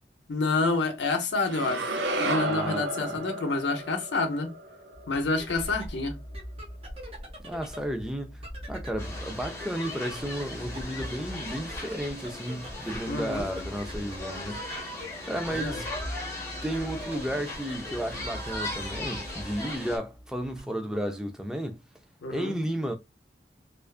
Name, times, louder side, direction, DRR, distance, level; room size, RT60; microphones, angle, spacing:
voice 1, 0.3-1.9 2.2-4.5 5.1-6.2 13.1-13.5 15.5-15.8 22.2-22.5, left 3 dB, 80° left, 0.7 m, -28 dB
sound 1, 1.5-5.7, right 1 dB, 80° right, 0.6 m, -32 dB
voice 2, 2.5-3.2 7.4-8.4 8.7-14.6 15.3-15.9 16.6-21.8 22.3-23.0, equal, 5° right, 0.4 m, -33 dB
sound 2, 4.9-20.6, equal, 35° right, 0.7 m, -42 dB
sound 3, 9.0-20.0, left 2 dB, 15° left, 0.9 m, -38 dB
2.4 x 2.3 x 2.3 m
head